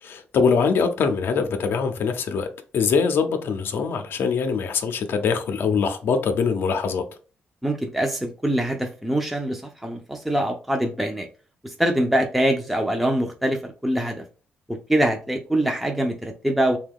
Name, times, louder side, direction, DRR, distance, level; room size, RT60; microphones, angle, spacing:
voice 1, 0.0-2.5 2.7-7.0, left 5 dB, 70° left, 0.5 m, -23 dB
voice 2, 7.6-11.3 11.6-14.2 14.7-16.8, right 1 dB, ahead, 0.5 m, -24 dB
2.7 x 2.3 x 3.5 m
cardioid pair, 80°, 4 cm